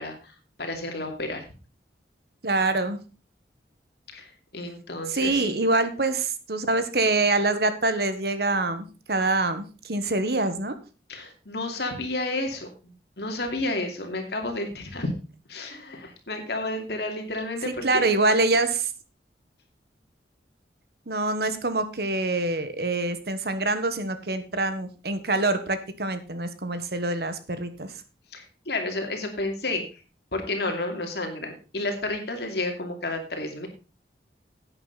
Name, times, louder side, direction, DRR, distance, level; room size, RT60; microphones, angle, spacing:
voice 1, 0.0-1.5 4.1-5.6 11.1-15.1 15.5-18.1 28.3-29.8 30.3-33.7, left 2 dB, 65° left, 4 dB, 2.6 m, -31 dB
voice 2, 2.4-3.0 5.1-10.8 17.7-18.9 21.1-27.9, right 2 dB, 60° right, 10 dB, 1.3 m, -25 dB
11.0 x 8.9 x 4.0 m, 0.33 s
head